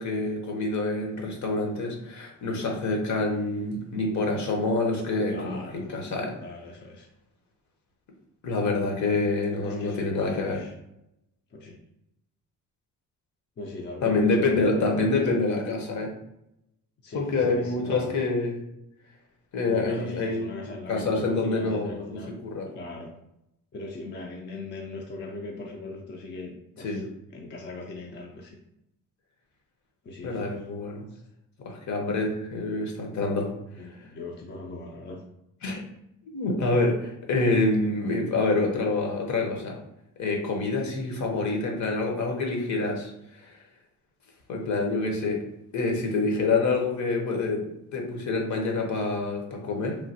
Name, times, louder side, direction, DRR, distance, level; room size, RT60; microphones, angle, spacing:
voice 1, 0.0-6.3 8.4-10.6 14.0-16.1 17.1-18.6 19.5-20.5 20.9-22.7 26.8-27.0 30.2-31.1 31.6-33.5 35.6-35.8 36.3-39.8 40.2-43.5 44.5-45.4 45.7-47.6 47.9-50.0, left 3 dB, 60° left, 1 dB, 0.8 m, -27 dB
voice 2, 5.3-5.9 6.4-7.1 9.6-10.7 11.5-11.8 13.6-15.3 17.0-18.2 19.7-22.4 22.7-23.1 23.7-27.0 27.3-28.6 30.0-30.6 31.1-31.2 33.7-35.2, left 2 dB, 35° left, 0 dB, 0.4 m, -39 dB
3.1 x 2.2 x 2.7 m, 0.82 s
cardioid pair, 90°, 34 cm